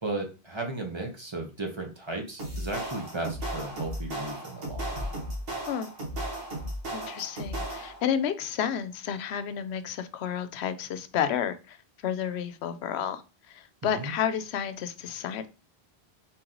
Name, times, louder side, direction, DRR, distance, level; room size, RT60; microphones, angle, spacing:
voice 1, 0.0-5.1 13.8-14.1, right 2 dB, 30° right, 2 dB, 1.0 m, -35 dB
sound 1, 2.4-8.1, right 1 dB, 65° right, 1.4 m, -35 dB
voice 2, 6.9-13.2 13.5-15.5, left 8 dB, 85° left, 11 dB, 0.8 m, -31 dB
4.3 x 3.0 x 3.8 m, 0.31 s
omnidirectional pair, 1.1 m